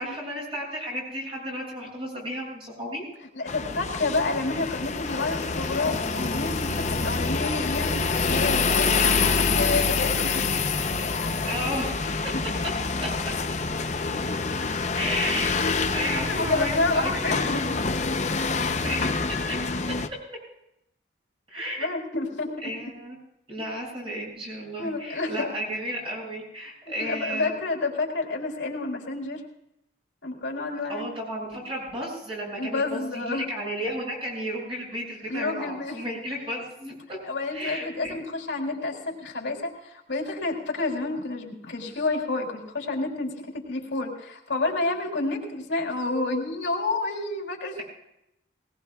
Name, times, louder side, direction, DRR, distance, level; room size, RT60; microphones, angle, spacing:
voice 1, 0.0-3.0 11.4-12.0 13.0-13.3 14.9-15.5 15.9-17.4 18.8-19.1 19.5-19.6 21.5-21.9 22.6-23.2 23.5-27.6 30.9-37.2 37.5-38.2, equal, 30° right, -3 dB, 7.5 m, -33 dB
voice 2, 3.3-10.5 16.2-17.6 21.8-22.5 24.8-25.5 27.0-29.4 30.2-31.0 32.6-33.4 35.3-36.0 37.3-47.8, left 3 dB, 80° left, 0 dB, 3.3 m, -29 dB
sound 1, 3.5-20.1, left 4 dB, 35° left, 0.7 m, -26 dB
20.5 x 19.0 x 2.4 m, 0.80 s
head